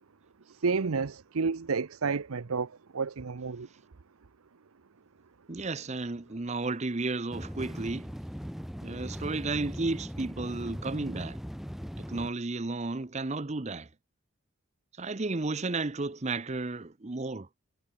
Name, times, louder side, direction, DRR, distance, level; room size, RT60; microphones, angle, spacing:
voice 1, 0.5-3.7, right 5 dB, 85° right, 0.7 m, -31 dB
voice 2, 5.5-8.1 8.8-11.4 12.0-13.9 15.0-17.5, right 3 dB, 30° right, 0.7 m, -33 dB
sound 1, 7.3-12.3, equal, ahead, 1.6 m, -39 dB
head